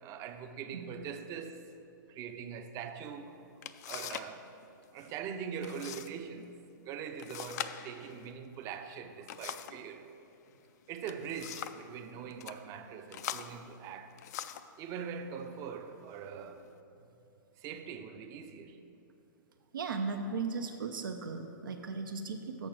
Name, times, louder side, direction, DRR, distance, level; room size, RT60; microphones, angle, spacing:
voice 1, 0.0-1.7 2.1-3.3 3.9-4.5 4.9-6.5 6.8-10.1 10.9-14.2 14.8-16.7 17.6-18.8, right 7 dB, 30° right, 0.5 m, -42 dB
voice 2, 0.7-1.0 19.7-22.7, right 4 dB, 85° right, 0.5 m, -37 dB
sound 1, 3.1-3.2 3.6-4.4 4.6-5.1 5.6-6.1 6.4-6.5 7.2-9.9 10.8-11.9 12.3-12.6 13.1-14.7 15.5-15.7 16.2-16.7, left 10 dB, 55° left, 0.4 m, -43 dB
6.5 x 6.4 x 6.0 m
hypercardioid pair, 135°, 11 cm